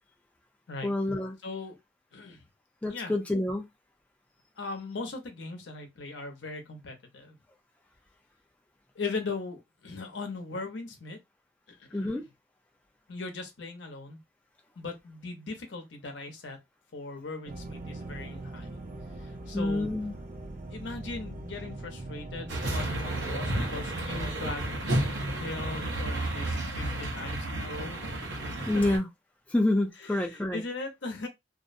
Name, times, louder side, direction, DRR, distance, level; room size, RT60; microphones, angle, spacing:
voice 1, 0.8-1.4 2.8-3.6 11.9-12.2 19.5-20.1 28.7-29.1 29.5-30.6, left 1 dB, 10° left, 0.4 m, -27 dB
voice 2, 1.4-1.8 2.1-2.4 2.9-3.1 4.6-7.4 8.9-11.2 11.7-12.2 13.1-14.2 14.8-16.6 16.9-18.7 19.2-19.9 20.7-24.6 25.3-28.0 28.3-28.4 30.0-31.3, left 3 dB, 85° left, 0.7 m, -39 dB
sound 1, 17.5-24.2, right 2 dB, 45° right, 0.5 m, -41 dB
sound 2, 22.5-29.0, right 1 dB, 75° right, 0.8 m, -32 dB
2.5 x 2.0 x 2.5 m
head